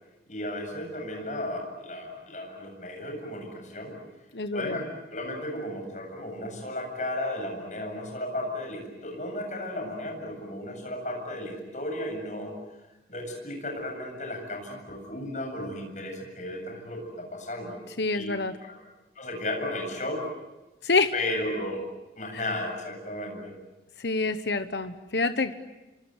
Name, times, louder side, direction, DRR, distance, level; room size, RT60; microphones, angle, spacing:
voice 1, 0.3-4.0 4.5-4.9 5.1-12.5 13.1-17.8 18.1-18.4 18.7-18.8 19.1-20.3 21.1-21.8 22.2-23.5, left 1 dB, 45° left, 2 dB, 7.9 m, -34 dB
voice 2, 4.3-4.8 18.0-18.5 20.8-21.1 24.0-25.5, left 3 dB, 80° left, 10 dB, 1.1 m, -26 dB
29.0 x 25.0 x 8.2 m, 1.1 s
head